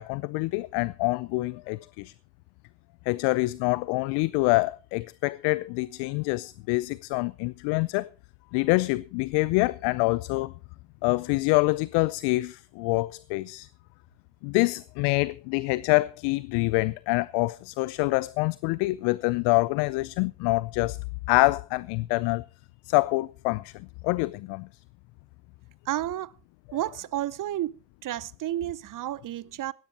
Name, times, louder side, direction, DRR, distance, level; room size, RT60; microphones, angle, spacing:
voice 1, 0.0-2.1 3.1-8.1 8.5-10.5 11.0-13.7 14.4-21.0 21.3-22.4 22.9-24.7, left 23 dB, 75° left, 0.5 m, -26 dB
voice 2, 25.9-26.3 26.7-27.7 28.0-29.7, right 13 dB, 50° right, 0.7 m, -31 dB
16.5 x 15.5 x 2.8 m
hypercardioid pair, 50°, 41 cm